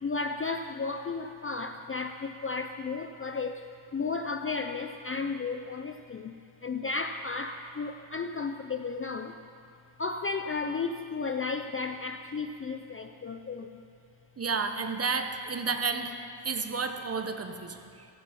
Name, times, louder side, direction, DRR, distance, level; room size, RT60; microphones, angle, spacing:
voice 1, 0.0-3.6 3.9-6.4 6.6-9.4 10.0-13.8, left 4 dB, 30° left, 6 dB, 0.4 m, -34 dB
voice 2, 14.4-16.1 16.4-18.1, right 4 dB, 30° right, 7 dB, 0.9 m, -31 dB
16.0 x 14.5 x 5.7 m, 2.5 s
wide cardioid pair, 175°, 48 cm